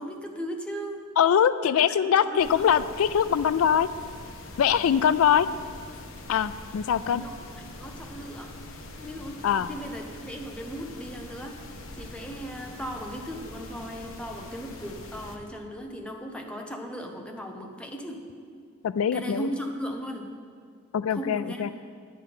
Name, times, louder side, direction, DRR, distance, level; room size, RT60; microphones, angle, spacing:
voice 1, 0.0-1.0 1.6-2.7 7.1-8.6 9.0-11.6 11.9-18.3 19.1-20.3 21.1-21.7, equal, 5° left, 2 dB, 0.9 m, -37 dB
voice 2, 1.2-3.9 4.6-5.5 6.3-7.2 9.4-9.7 18.8-19.5 20.9-21.7, left 8 dB, 90° left, 15 dB, 0.3 m, -23 dB
sound 1, 2.4-15.4, left 2 dB, 75° left, 1.1 m, -43 dB
10.0 x 8.6 x 5.5 m, 2.1 s
head